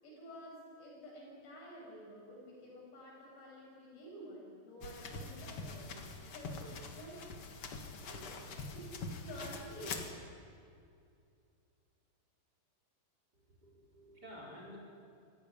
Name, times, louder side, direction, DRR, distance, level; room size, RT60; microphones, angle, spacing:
voice 1, 0.0-7.2 8.0-8.8 9.2-10.1, equal, 85° left, -3 dB, 9.5 m, -50 dB
sound 1, 4.8-10.1, left 3 dB, 50° left, 1.7 m, -44 dB
voice 2, 13.3-14.8, equal, 25° right, -3 dB, 4.8 m, -52 dB
25.0 x 15.5 x 10.0 m, 2.5 s
omnidirectional pair, 4.9 m